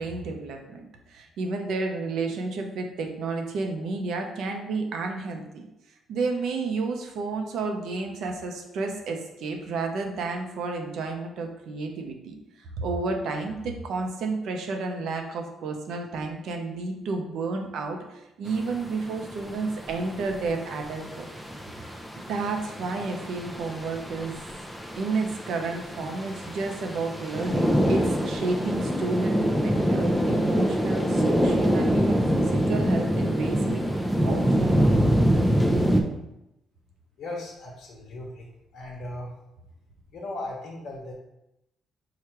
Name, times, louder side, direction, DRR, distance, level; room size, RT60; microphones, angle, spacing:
voice 1, 0.0-5.6 6.1-12.3 12.8-21.3 22.3-24.4 25.0-33.9 34.2-35.4, right 3 dB, 75° right, 3 dB, 0.7 m, -31 dB
sound 1, 18.5-36.0, equal, ahead, 0.6 m, -25 dB
voice 2, 37.2-38.5 38.7-39.3 40.1-41.1, left 2 dB, 60° left, -3 dB, 0.9 m, -37 dB
4.8 x 2.4 x 4.5 m, 0.89 s
cardioid pair, 90°, 0 cm